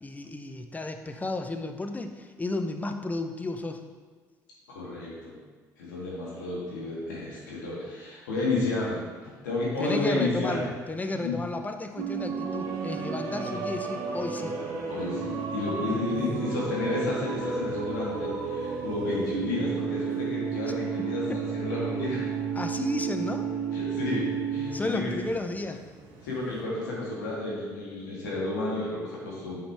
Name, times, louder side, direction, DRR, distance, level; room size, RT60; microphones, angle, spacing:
voice 1, 0.0-3.8 9.8-14.6 21.0-21.4 22.5-23.5 24.7-25.8, left 2 dB, 15° left, 6 dB, 0.6 m, -33 dB
voice 2, 4.7-5.4 5.8-10.6 11.1-11.3 14.9-22.2 23.7-25.1 26.2-29.6, left 2 dB, 85° left, -5 dB, 1.7 m, -31 dB
sound 1, 12.0-26.6, right 5 dB, 60° right, 1.2 m, -32 dB
6.1 x 5.0 x 3.4 m, 1.4 s
hypercardioid pair, 65°, 9 cm